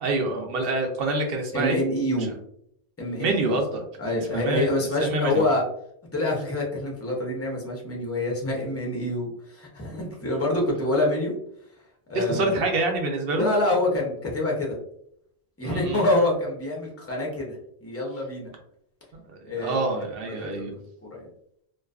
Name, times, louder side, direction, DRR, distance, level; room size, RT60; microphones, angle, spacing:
voice 1, 0.0-1.8 3.2-3.8 4.3-5.4 12.1-13.5 15.6-16.0 19.1-20.7, right 2 dB, 70° right, 2 dB, 0.8 m, -26 dB
voice 2, 1.5-2.3 3.0-3.6 4.0-5.6 6.1-11.3 12.1-12.6 13.3-14.8 15.6-18.5 19.5-19.8 20.4-20.7 21.0-21.3, left 1 dB, 20° left, -2 dB, 0.5 m, -26 dB
2.5 x 2.3 x 2.3 m, 0.71 s
omnidirectional pair, 1.1 m